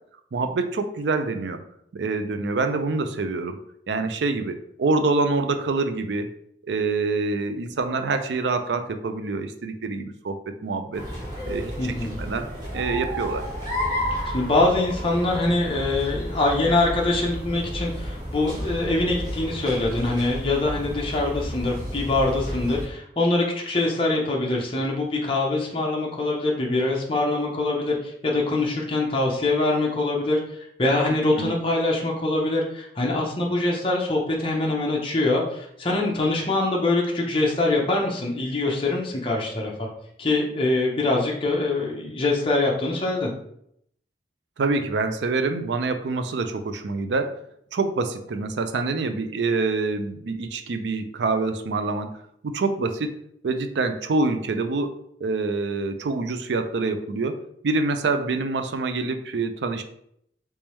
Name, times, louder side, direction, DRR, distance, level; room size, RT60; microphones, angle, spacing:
voice 1, 0.3-1.6 1.9-3.6 3.9-6.3 6.6-11.0 11.5-12.5 12.7-13.4 31.4-31.5 44.6-47.4 47.7-52.1 52.4-53.1 53.4-57.4 57.6-59.8, right 3 dB, 75° right, 7 dB, 0.4 m, -26 dB
sound 1, 10.9-22.9, equal, 25° right, 1.2 m, -32 dB
voice 2, 11.8-12.2 14.2-39.9 40.2-43.3, left 2 dB, 30° left, -2 dB, 0.7 m, -24 dB
3.4 x 3.1 x 3.0 m, 0.71 s
head